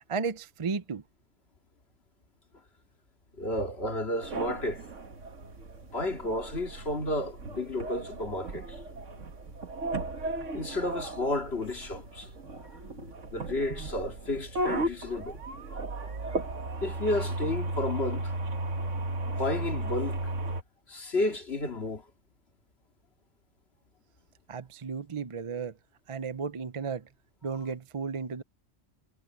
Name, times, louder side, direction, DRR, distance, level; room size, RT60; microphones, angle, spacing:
voice 1, 0.1-1.0 24.5-25.7 26.1-27.0 27.4-28.4, right 5 dB, 35° right, 0.6 m, -34 dB
voice 2, 3.3-4.9 5.8-8.8 10.5-15.4 16.8-18.3 19.3-20.3 20.9-22.0, left 2 dB, 55° left, 2.7 m, -32 dB
sound 1, 4.2-20.6, right 2 dB, 75° right, 1.9 m, -35 dB
omnidirectional pair, 1.3 m